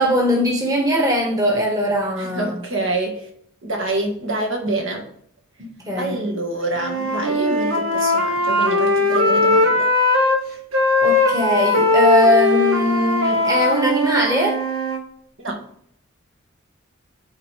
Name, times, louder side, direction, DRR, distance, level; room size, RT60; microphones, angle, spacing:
voice 1, 0.0-2.6 5.8-6.2 11.0-14.6, equal, 15° right, 0 dB, 1.4 m, -20 dB
voice 2, 2.2-3.3 3.6-5.1 6.0-9.9 15.4-15.6, right 2 dB, 70° right, 2 dB, 1.6 m, -26 dB
Wind instrument woodwind instrument, 6.8-10.4 10.7-15.0, left 2 dB, 90° right, 1.3 m, -19 dB
9.6 x 3.9 x 3.4 m, 0.63 s
head